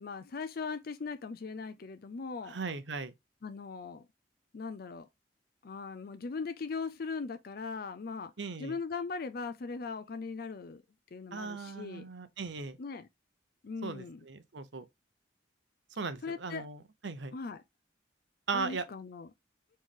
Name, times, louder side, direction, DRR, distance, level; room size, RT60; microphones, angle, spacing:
voice 1, 0.0-2.6 3.4-4.1 4.5-5.1 5.6-8.3 8.6-10.8 11.1-12.1 12.8-13.1 13.6-14.2 16.2-16.7 17.3-17.6 18.5-19.3, left 4 dB, 55° left, 0.5 m, -39 dB
voice 2, 2.4-3.1 8.4-8.7 11.3-12.8 13.8-14.8 16.0-17.3 18.5-18.9, right 4 dB, 75° right, 0.8 m, -38 dB
4.4 x 3.1 x 3.6 m
head